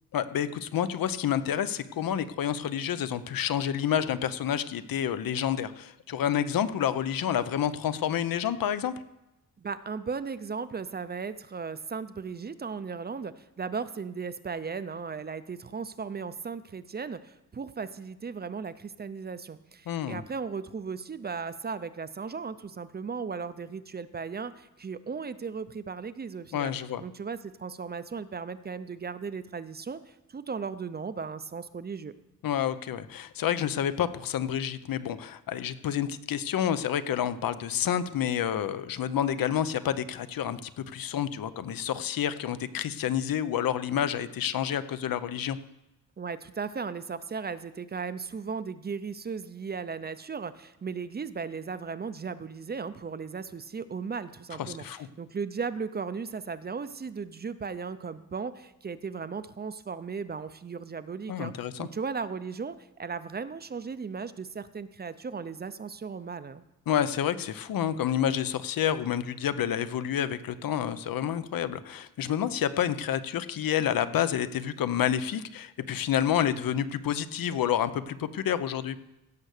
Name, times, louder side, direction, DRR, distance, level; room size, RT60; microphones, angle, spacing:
voice 1, 0.1-8.9 19.9-20.2 26.5-27.0 32.4-45.6 54.6-55.1 61.3-61.9 66.9-79.0, left 9 dB, 80° left, 13 dB, 0.7 m, -29 dB
voice 2, 9.6-26.7 27.0-32.1 46.2-66.6, right 5 dB, 30° right, 13 dB, 0.5 m, -36 dB
16.5 x 6.7 x 6.5 m, 0.95 s
wide cardioid pair, 165°, 34 cm